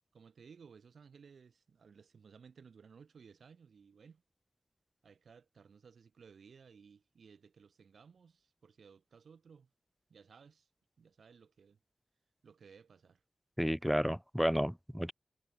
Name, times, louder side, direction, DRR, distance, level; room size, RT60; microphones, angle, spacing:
voice 1, 0.1-4.2 5.0-9.7 10.1-10.7 11.0-11.8 12.4-13.2, right 6 dB, 80° right, 6.4 m, -59 dB
voice 2, 13.6-15.1, equal, ahead, 0.3 m, -31 dB
wide cardioid pair, 130°, 0 cm